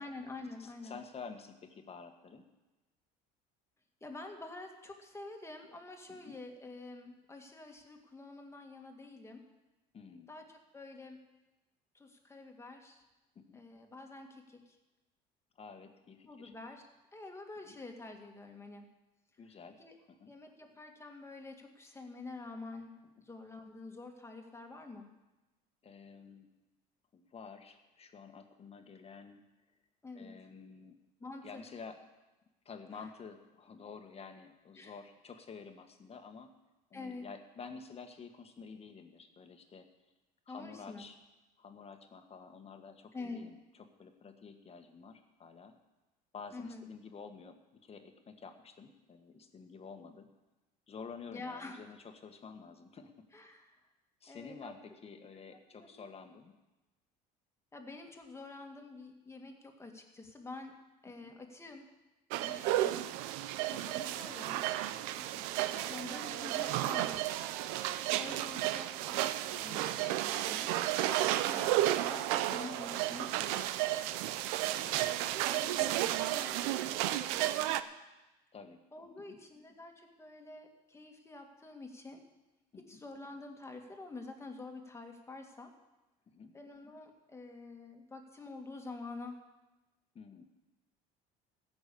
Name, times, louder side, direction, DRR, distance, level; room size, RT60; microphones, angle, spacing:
voice 1, 0.0-1.0 4.0-9.5 10.3-11.2 11.9-13.0 13.5-14.8 16.3-18.9 19.8-20.0 20.3-23.0 23.2-25.1 30.0-30.3 31.2-31.6 32.9-33.1 34.8-34.9 36.9-37.3 40.5-41.0 43.1-43.4 46.5-46.9 51.3-51.8 53.3-53.8 54.3-54.7 55.7-56.0 57.7-60.8 61.0-61.9 62.4-63.0 63.7-64.7 65.7-67.3 68.2-73.9 74.8-77.8 78.9-82.2 82.8-85.7 86.5-89.4, left 3 dB, 15° left, 3 dB, 2.1 m, -48 dB
voice 2, 0.6-2.4 6.1-6.4 9.9-10.3 13.3-13.6 15.6-16.5 17.6-17.7 19.4-19.8 20.1-20.3 23.1-23.2 25.8-26.5 27.1-29.4 30.1-31.0 31.4-32.0 32.6-36.5 36.9-39.9 40.5-41.2 41.6-43.6 44.0-45.7 46.3-50.3 50.9-53.5 54.2-56.5 61.2-61.3 62.7-62.9 65.2-65.5 68.1-68.4 71.5-71.6 74.7-75.0 78.5-78.8 79.3-79.4 82.7-83.0 86.3-86.6 90.1-90.5, left 5 dB, 35° left, 6 dB, 1.6 m, -50 dB
sound 1, 62.3-77.8, right 14 dB, 85° right, 0.6 m, -33 dB
15.0 x 6.2 x 8.5 m, 1.1 s
supercardioid pair, 95°, 18 cm